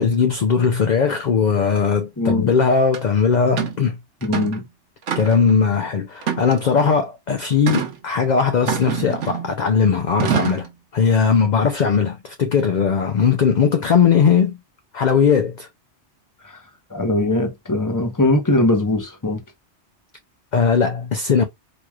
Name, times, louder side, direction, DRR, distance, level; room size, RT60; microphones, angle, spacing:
voice 1, 0.0-4.0 5.2-10.7 10.9-14.6 14.9-15.7 20.5-21.4, left 6 dB, 50° left, 0.6 m, -18 dB
voice 2, 2.2-2.5 4.2-4.6 16.9-19.4, left 2 dB, 20° left, 0.9 m, -20 dB
sound 1, 2.9-3.0 3.6-3.8 4.2-4.6 5.1-5.5 6.2-6.9 7.7-7.9 8.7-9.5 10.2-10.7, right 8 dB, 85° right, 1.2 m, -25 dB
4.4 x 3.1 x 2.3 m
omnidirectional pair, 1.2 m